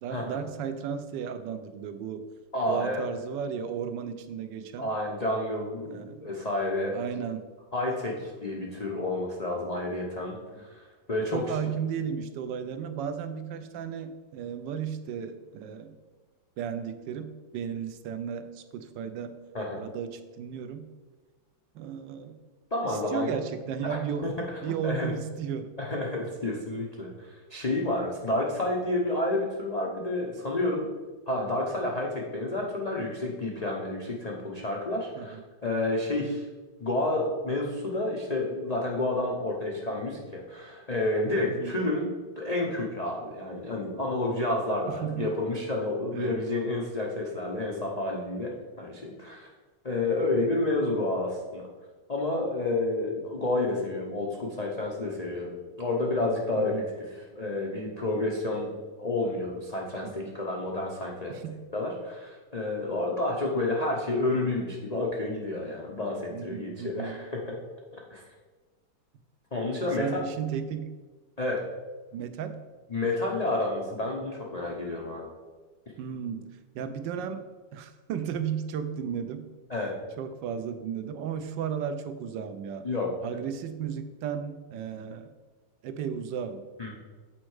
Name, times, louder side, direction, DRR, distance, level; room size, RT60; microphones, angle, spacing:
voice 1, 0.0-2.3 2.7-4.9 5.8-6.3 6.9-7.5 11.3-16.0 16.6-19.4 19.8-20.8 21.7-22.3 22.8-24.3 24.6-25.7 35.2-35.4 41.4-41.8 44.9-45.3 46.1-46.4 56.6-56.9 60.0-60.3 61.3-61.6 66.3-67.2 69.8-70.9 72.1-72.6 76.0-76.4 76.7-77.4 77.7-79.4 80.2-82.9 83.2-85.3 85.8-86.6, right 7 dB, 80° right, 10 dB, 1.3 m, -34 dB
voice 2, 2.5-3.0 4.8-7.0 7.7-11.6 19.5-19.8 22.7-23.3 23.9-24.3 24.8-25.1 25.8-30.9 31.3-36.5 36.8-42.1 42.4-49.5 49.8-51.7 52.1-56.7 57.3-58.7 59.0-61.4 61.7-67.4 67.9-68.2 69.5-70.2 71.4-71.6 72.9-75.3 79.7-79.9 82.8-83.1 86.8-86.9, left 2 dB, 70° left, -2 dB, 0.3 m, -30 dB
7.5 x 4.4 x 4.7 m, 1.3 s
omnidirectional pair, 2.0 m